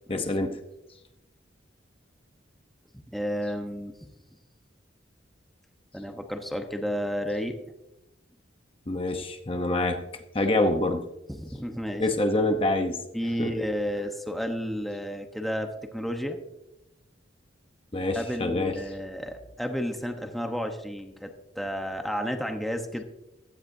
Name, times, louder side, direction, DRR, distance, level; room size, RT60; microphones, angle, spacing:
voice 1, 0.1-0.6 8.9-11.1 12.0-13.0 13.4-13.5 17.9-18.8, left 2 dB, 30° left, 6 dB, 0.8 m, -26 dB
voice 2, 3.1-4.1 5.9-7.6 11.3-12.0 13.1-16.4 18.1-23.0, equal, ahead, 4 dB, 0.9 m, -32 dB
16.0 x 13.0 x 2.7 m, 0.91 s
head